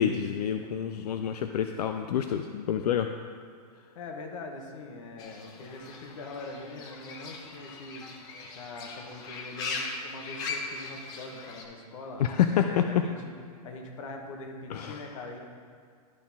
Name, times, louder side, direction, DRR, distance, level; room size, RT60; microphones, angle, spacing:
voice 1, 0.0-3.1 12.2-12.8 14.7-15.0, left 9 dB, 80° left, 6 dB, 0.4 m, -27 dB
voice 2, 3.9-8.1 8.4-15.4, left 2 dB, 55° left, 3 dB, 1.2 m, -42 dB
Fowl / Bird, 5.2-11.6, left 3 dB, 20° left, 0.5 m, -39 dB
12.0 x 4.3 x 3.5 m, 2.1 s
hypercardioid pair, 165°, 20 cm